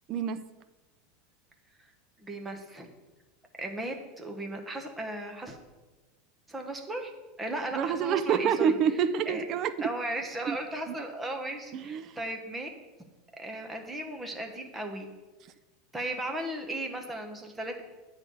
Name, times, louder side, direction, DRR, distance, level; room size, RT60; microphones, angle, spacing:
voice 1, 2.2-2.9 3.6-5.6 6.5-7.1 7.4-8.7 9.3-9.4 9.8-12.7 13.4-15.1 15.9-17.8, right 1 dB, 10° right, 3 dB, 1.1 m, -36 dB
voice 2, 7.7-9.9 10.5-10.6 10.9-11.0 11.7-12.1, right 7 dB, 35° right, 12 dB, 0.5 m, -27 dB
9.1 x 4.0 x 7.0 m, 1.2 s
supercardioid pair, 150°, 0 cm